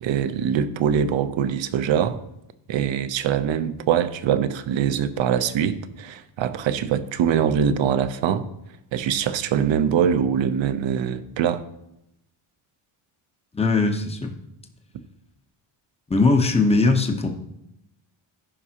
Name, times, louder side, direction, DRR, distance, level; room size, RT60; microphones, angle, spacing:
voice 1, 0.0-2.2 2.7-8.5 8.9-11.6, right 8 dB, 65° right, 11 dB, 0.8 m, -23 dB
voice 2, 13.5-14.3 16.1-17.3, left 3 dB, 10° left, 4 dB, 0.9 m, -20 dB
15.0 x 5.4 x 2.9 m, 0.84 s
cardioid pair, 130°, 49 cm